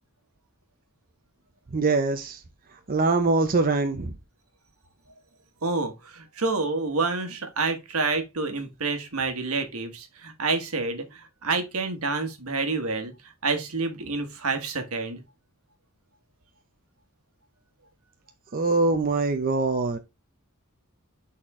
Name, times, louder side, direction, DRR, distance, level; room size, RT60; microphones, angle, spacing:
voice 1, 1.7-2.4 2.9-4.1 18.5-20.0, right 3 dB, 40° right, 0.6 m, -23 dB
voice 2, 5.6-15.2, right 3 dB, 80° right, 1.4 m, -28 dB
6.6 x 4.3 x 3.6 m
head